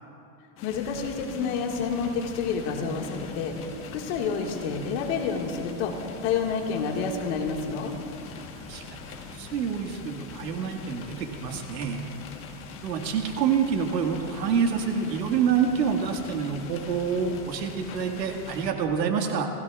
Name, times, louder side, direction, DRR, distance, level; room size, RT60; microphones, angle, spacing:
voice 1, 0.6-3.6 3.9-5.9 6.2-7.9, left 5 dB, 45° left, 1 dB, 1.9 m, -29 dB
sound 1, 0.6-18.7, left 6 dB, 25° left, 1.3 m, -44 dB
sound 2, 0.7-19.0, left 3 dB, 10° left, 0.5 m, -46 dB
voice 2, 8.3-12.0 12.8-19.5, right 6 dB, 90° right, 3 dB, 2.0 m, -27 dB
28.5 x 16.5 x 2.4 m, 2.8 s
supercardioid pair, 145°, 48 cm